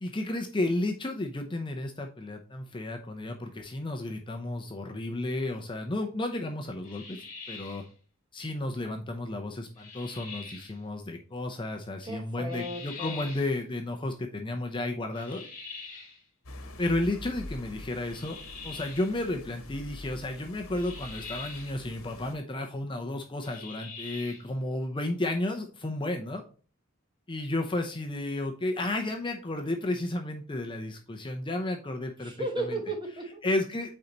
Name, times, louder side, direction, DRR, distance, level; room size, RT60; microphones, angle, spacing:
voice 1, 0.0-7.2 7.5-7.8 8.3-15.4 16.8-18.4 18.6-26.4 27.3-32.3 32.7-32.8 33.4-33.9, left 2 dB, 25° left, 3 dB, 0.6 m, -32 dB
sound 1, 6.8-7.9 9.8-10.8 12.5-13.5 15.1-16.2 18.1-19.1 20.7-21.8 23.4-24.5, left 4 dB, 40° left, 2.2 m, -44 dB
voice 2, 12.1-13.3 32.2-33.4, right 1 dB, 25° right, 3 dB, 1.3 m, -35 dB
sound 2, 16.4-22.3, left 2 dB, 85° left, 1.2 m, -45 dB
8.5 x 3.9 x 2.9 m, 0.39 s
head